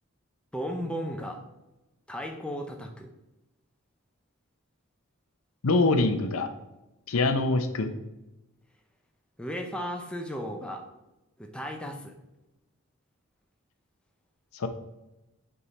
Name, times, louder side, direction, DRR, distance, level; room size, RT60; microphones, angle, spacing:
voice 1, 0.5-1.4 2.1-3.1 9.4-10.8 11.4-12.1, equal, 5° left, 2 dB, 0.6 m, -35 dB
voice 2, 5.6-6.5 7.1-7.9 14.5-14.7, left 3 dB, 75° left, 8 dB, 0.6 m, -24 dB
7.0 x 3.6 x 4.1 m, 0.97 s
head